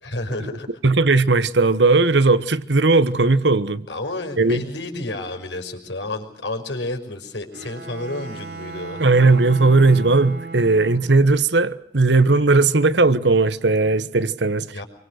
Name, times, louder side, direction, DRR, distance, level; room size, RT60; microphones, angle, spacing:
voice 1, 0.0-0.7 3.9-9.0 14.7-14.8, left 2 dB, 85° left, 5.7 m, -30 dB
voice 2, 0.8-3.9 4.4-4.6 9.0-14.8, right 3 dB, 80° right, 1.2 m, -17 dB
Bowed string instrument, 7.5-11.3, right 4 dB, 65° right, 3.3 m, -36 dB
27.5 x 24.0 x 6.6 m
head